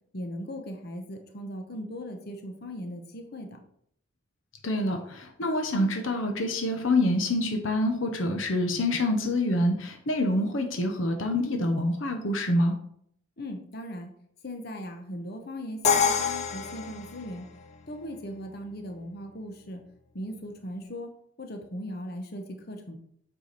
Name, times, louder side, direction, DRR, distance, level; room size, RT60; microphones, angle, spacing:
voice 1, 0.1-3.6 13.4-14.1 14.4-17.4 17.9-19.8 20.1-21.1 21.4-23.0, equal, 50° left, 4 dB, 1.0 m, -38 dB
voice 2, 4.6-12.7, left 1 dB, 75° left, 5 dB, 0.9 m, -26 dB
Crash cymbal, 15.8-17.8, left 6 dB, 35° left, 0.5 m, -27 dB
8.3 x 4.8 x 4.1 m, 0.68 s
head